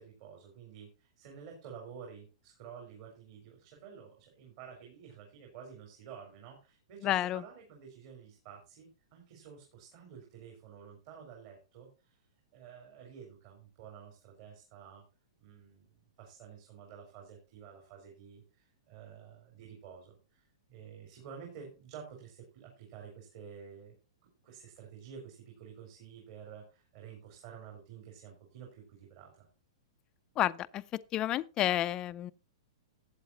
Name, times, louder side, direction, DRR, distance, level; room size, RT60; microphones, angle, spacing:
voice 1, 0.0-12.2 12.5-15.0 15.4-24.0 24.2-29.5, right 7 dB, 45° right, 4.2 m, -51 dB
voice 2, 7.0-7.4 30.4-30.8 31.1-32.3, left 13 dB, 25° left, 0.5 m, -30 dB
15.0 x 8.8 x 2.8 m
hypercardioid pair, 150°, 3 cm